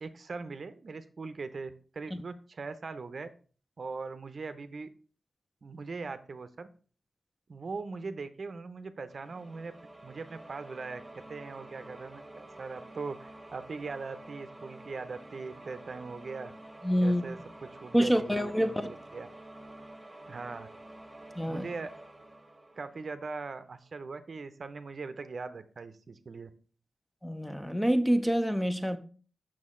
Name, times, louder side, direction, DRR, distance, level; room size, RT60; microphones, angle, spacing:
voice 1, 0.0-3.3 3.8-4.9 5.6-6.7 7.5-9.7 10.0-16.5 17.0-19.3 20.3-20.7 21.4-21.9 22.8-26.5, right 4 dB, 55° right, 0.6 m, -40 dB
sound 1, 9.1-23.7, right 1 dB, 15° right, 1.4 m, -49 dB
voice 2, 16.8-17.2 17.9-18.9 21.4-21.6 27.2-29.0, equal, 5° left, 0.6 m, -27 dB
6.3 x 6.2 x 3.7 m
wide cardioid pair, 80°, 0 cm